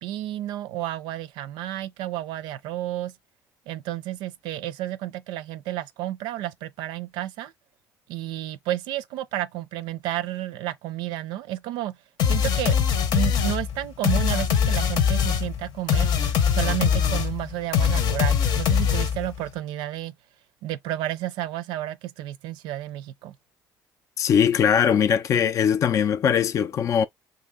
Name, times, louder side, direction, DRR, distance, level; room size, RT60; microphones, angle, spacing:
voice 1, 0.0-3.2 3.7-7.5 8.1-12.0 12.3-12.8 13.1-16.1 16.5-20.1 20.6-23.3, right 14 dB, 90° right, 0.4 m, -31 dB
sound 1, 12.2-19.4, left 7 dB, 65° left, 0.8 m, -22 dB
voice 2, 24.2-27.0, left 8 dB, 45° left, 0.3 m, -21 dB
2.7 x 2.7 x 3.6 m
cardioid pair, 110°, 8 cm